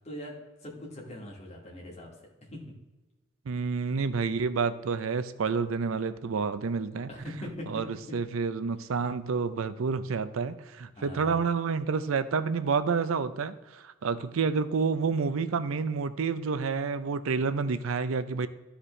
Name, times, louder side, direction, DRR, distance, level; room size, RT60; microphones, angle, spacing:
voice 1, 0.6-2.6 7.1-7.7 11.0-11.4, left 1 dB, 35° left, -3 dB, 2.2 m, -42 dB
voice 2, 3.5-7.1 7.7-7.9 8.1-18.5, right 5 dB, 90° right, 13 dB, 0.5 m, -29 dB
13.0 x 5.0 x 3.2 m, 1.1 s
head